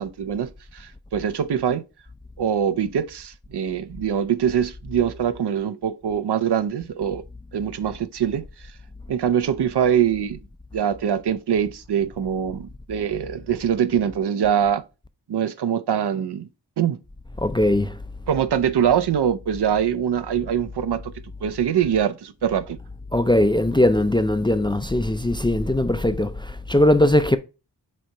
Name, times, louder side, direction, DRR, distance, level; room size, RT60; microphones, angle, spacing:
voice 1, 0.0-1.8 2.4-7.2 7.5-8.4 9.1-10.4 10.7-14.8 15.3-16.5 16.8-17.0 18.3-21.1 21.4-22.8, right 8 dB, 70° right, 0.6 m, -23 dB
voice 2, 17.4-18.0 23.1-27.4, left 1 dB, 10° left, 0.4 m, -20 dB
7.5 x 2.8 x 4.4 m
wide cardioid pair, 80°, 42 cm